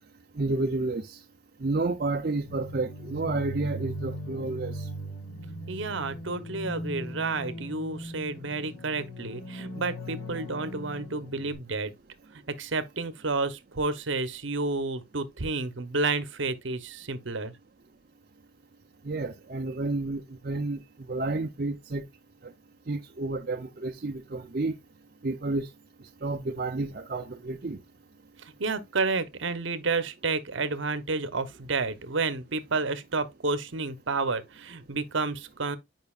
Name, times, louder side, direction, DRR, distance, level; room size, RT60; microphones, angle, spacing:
voice 1, 0.4-1.2 1.6-4.9 19.0-22.0 22.9-24.7 25.2-25.7 26.2-27.8, right 2 dB, 50° right, 0.6 m, -30 dB
sound 1, 2.4-11.5, equal, 70° left, 3.2 m, -39 dB
voice 2, 5.7-11.9 12.6-17.5 28.6-35.8, right 3 dB, 70° right, 0.9 m, -30 dB
9.3 x 5.2 x 2.4 m
head